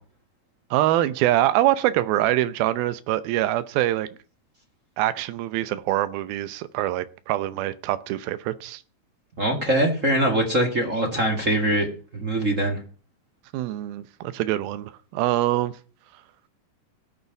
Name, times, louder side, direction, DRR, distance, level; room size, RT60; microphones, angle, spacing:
voice 1, 0.7-4.1 5.0-8.8 13.5-15.7, right 14 dB, 90° right, 2.6 m, -24 dB
voice 2, 9.4-11.9 12.1-12.8, right 1 dB, 30° right, 1.8 m, -22 dB
18.5 x 6.8 x 5.9 m
omnidirectional pair, 4.2 m